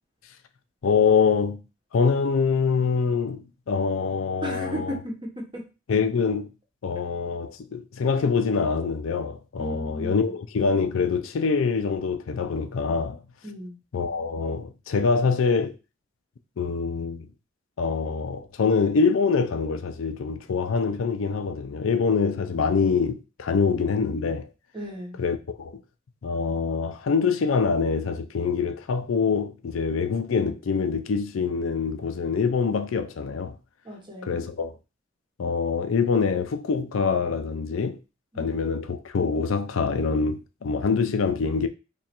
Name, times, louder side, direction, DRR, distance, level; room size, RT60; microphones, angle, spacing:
voice 1, 0.8-1.6 1.9-4.9 5.9-6.5 6.8-13.2 13.9-15.7 16.6-17.3 17.8-24.5 25.2-25.8 26.2-33.5 34.2-34.7 35.4-38.0 38.4-41.7, left 5 dB, 75° left, 0.4 m, -25 dB
voice 2, 4.4-5.6 9.6-10.3 13.4-13.8 24.7-25.2 33.8-34.4 38.3-38.6, equal, 25° right, 1.0 m, -35 dB
3.0 x 2.5 x 4.3 m
head